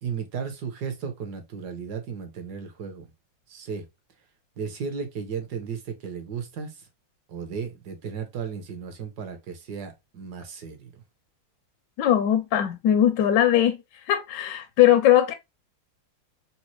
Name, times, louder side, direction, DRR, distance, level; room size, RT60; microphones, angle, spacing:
voice 1, 0.0-3.1 3.5-3.8 4.6-6.7 7.3-11.0, right 6 dB, 65° right, 1.2 m, -35 dB
voice 2, 12.0-13.8 14.1-15.3, left 11 dB, 75° left, 1.0 m, -20 dB
4.1 x 2.1 x 2.9 m
omnidirectional pair, 2.2 m